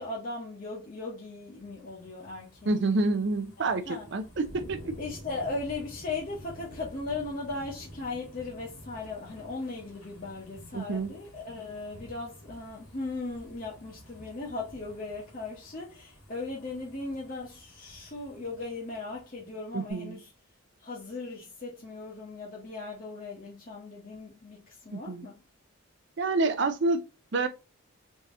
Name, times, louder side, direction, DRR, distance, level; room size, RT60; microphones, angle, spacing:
voice 1, 0.0-3.0 3.6-4.1 5.0-20.3 20.8-25.4, left 3 dB, 40° left, 0.9 m, -38 dB
sound 1, 1.3-19.5 19.9-20.0, left 1 dB, 85° left, 1.9 m, -50 dB
voice 2, 2.7-4.9 10.7-11.1 19.7-20.2 24.9-25.3 26.2-27.0 27.3-27.5, right 3 dB, 55° right, 0.5 m, -28 dB
3.6 x 2.8 x 3.6 m
head